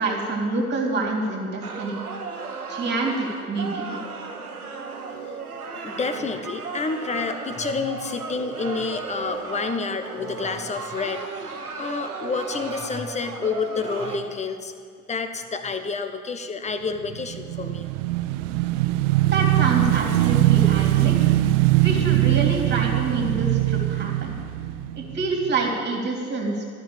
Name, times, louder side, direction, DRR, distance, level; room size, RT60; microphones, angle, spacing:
voice 1, 0.0-2.0 2.7-3.8 19.3-21.3 21.8-24.4 25.0-26.6, right 3 dB, 25° right, 0 dB, 2.9 m, -27 dB
sound 1, 1.6-14.2, right 4 dB, 90° right, 1.3 m, -35 dB
voice 2, 5.8-11.5 11.8-14.7 15.1-17.9, left 4 dB, 15° left, 8 dB, 0.9 m, -29 dB
Motorcycle / Engine, 17.1-25.6, right 16 dB, 60° right, 0.6 m, -21 dB
13.0 x 6.2 x 8.8 m, 2.1 s
figure-of-eight pair, 80°, 43 cm